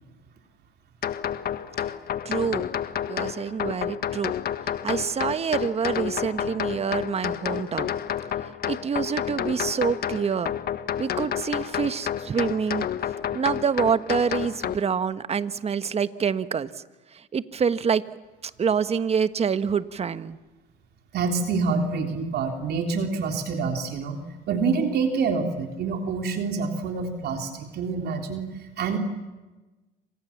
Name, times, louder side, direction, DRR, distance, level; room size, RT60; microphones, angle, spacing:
sound 1, 1.0-14.7, left 9 dB, 55° left, 1.4 m, -30 dB
voice 1, 2.2-2.7 3.1-4.3 4.8-7.9 8.7-10.5 11.0-12.9 13.3-16.7 17.3-18.0 18.6-20.4, right 6 dB, 35° right, 13 dB, 1.3 m, -26 dB
voice 2, 21.1-28.5 28.8-29.0, right 4 dB, 60° right, 4 dB, 3.6 m, -27 dB
29.0 x 26.0 x 7.3 m, 1.2 s
cardioid pair, 100°, 19 cm